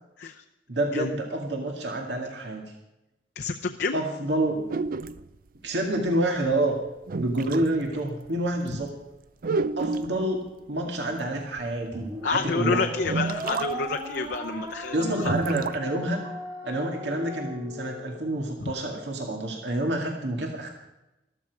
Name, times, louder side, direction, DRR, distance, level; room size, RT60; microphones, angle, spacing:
voice 1, 0.7-2.6 3.9-4.6 5.6-6.8 7.2-9.0 9.8-12.9 14.9-16.2 16.6-20.7, right 1 dB, 80° right, 1 dB, 2.2 m, -28 dB
voice 2, 3.4-4.0 12.2-15.3 18.6-18.7, left 4 dB, 65° left, 3 dB, 0.7 m, -29 dB
sound 1, 4.7-5.3 6.5-6.6 7.1-7.7 8.3-8.4 8.7-8.8 9.4-10.2 11.6-11.7 12.3-12.4 13.0-13.7 14.0-14.1 14.3-14.4 15.2-15.8, right 3 dB, 55° right, 0.5 m, -29 dB
sound 2, 11.9-18.4, equal, 25° right, 2.4 m, -37 dB
14.0 x 13.5 x 4.8 m, 0.95 s
head